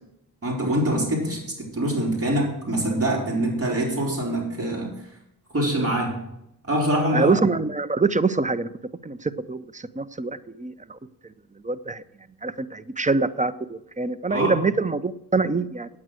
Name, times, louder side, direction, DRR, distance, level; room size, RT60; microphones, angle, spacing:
voice 1, 0.4-4.9 5.5-6.1 6.6-7.3 14.3-14.6, right 1 dB, 35° right, -1 dB, 4.2 m, -24 dB
voice 2, 7.1-8.7 9.0-10.3 10.6-11.0 11.6-12.0 12.4-15.9, right 3 dB, 20° right, 15 dB, 0.6 m, -25 dB
9.4 x 8.7 x 6.3 m, 0.82 s
cardioid pair, 75°, 40 cm